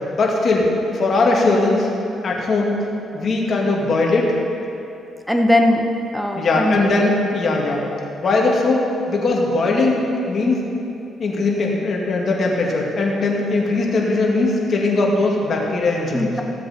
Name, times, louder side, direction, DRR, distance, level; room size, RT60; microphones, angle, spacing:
voice 1, 0.1-0.6 0.9-1.9 2.2-2.8 3.1-4.3 6.4-7.8 8.2-10.7 11.2-16.3, left 3 dB, 50° left, -2 dB, 2.2 m, -19 dB
voice 2, 5.3-5.9 6.1-7.0 16.1-16.4, left 1 dB, ahead, 2 dB, 0.9 m, -19 dB
16.0 x 7.5 x 4.4 m, 2.8 s
cardioid pair, 90°, 0 cm